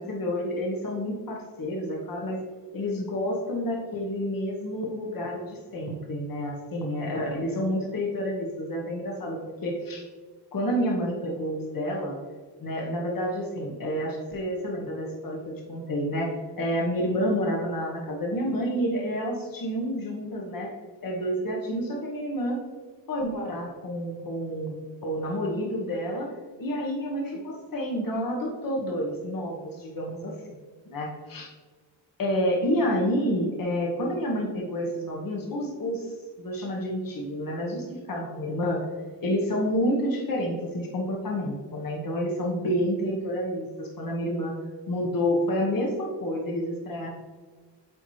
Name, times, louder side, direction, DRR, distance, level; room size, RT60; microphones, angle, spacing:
voice 1, 0.0-2.4 2.7-10.0 10.5-12.2 12.6-20.7 21.0-22.6 23.1-26.3 26.6-30.3 30.9-31.5 32.2-38.8 39.2-44.5 44.9-47.1, equal, 50° left, -1 dB, 1.2 m, -29 dB
8.3 x 4.2 x 3.2 m, 1.5 s
wide cardioid pair, 110°, 43 cm